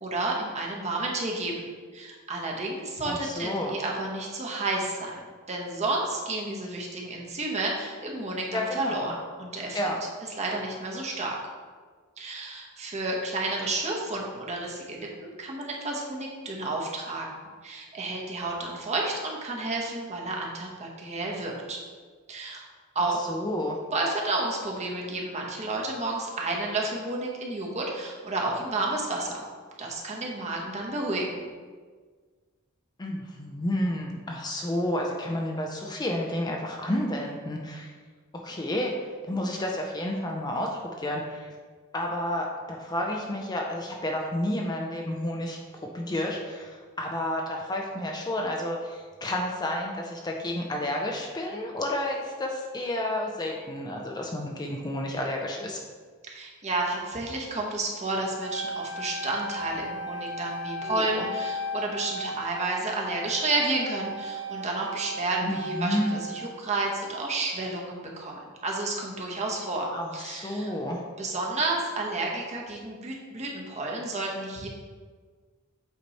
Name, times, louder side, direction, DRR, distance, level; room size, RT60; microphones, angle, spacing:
voice 1, 0.0-1.6 1.9-5.2 5.5-9.1 9.4-9.8 10.4-11.4 12.2-21.8 22.3-22.6 22.9-23.2 23.9-29.4 29.8-31.4 56.3-70.7 71.2-74.7, right 2 dB, 30° right, -2 dB, 1.0 m, -31 dB
voice 2, 3.0-3.8 8.5-9.2 9.7-10.0 23.2-23.8 33.0-37.9 38.3-41.5 41.9-55.8 60.8-61.3 65.4-66.2 69.9-71.0, left 1 dB, 20° left, 0 dB, 0.5 m, -31 dB
Wind instrument woodwind instrument, 58.4-66.6, equal, 70° left, 1.0 m, -36 dB
8.2 x 3.0 x 4.1 m, 1.5 s
head